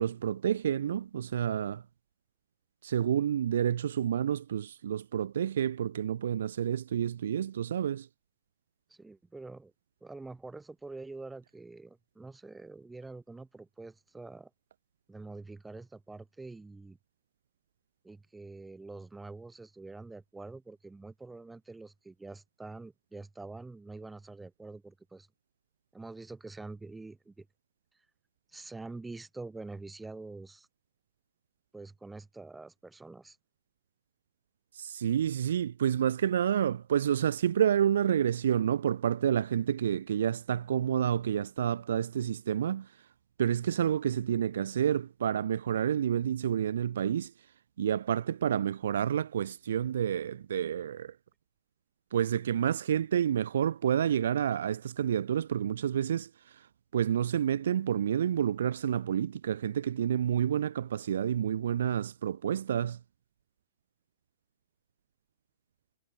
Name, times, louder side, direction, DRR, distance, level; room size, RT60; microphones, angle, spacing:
voice 1, 0.0-1.8 2.8-8.1 34.7-42.9 43.4-47.3 47.8-51.1 52.1-56.7 56.9-63.0, right 9 dB, 70° right, 0.4 m, -29 dB
voice 2, 8.9-9.7 10.0-14.5 15.1-17.0 18.0-25.3 25.9-27.5 28.5-30.7 31.7-33.4, right 3 dB, 5° right, 3.4 m, -46 dB
hypercardioid pair, 130°, 0 cm